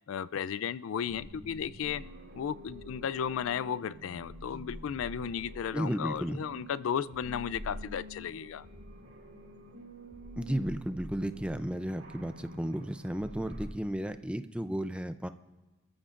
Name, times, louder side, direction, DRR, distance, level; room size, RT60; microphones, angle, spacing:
voice 1, 0.1-2.0 2.3-8.7, left 8 dB, 80° left, 18 dB, 0.3 m, -34 dB
sound 1, 1.0-13.7, equal, 90° right, 4.0 m, -47 dB
voice 2, 5.7-6.4 10.4-15.3, right 1 dB, 5° right, 10 dB, 0.4 m, -33 dB
26.5 x 14.0 x 2.5 m, 1.2 s
head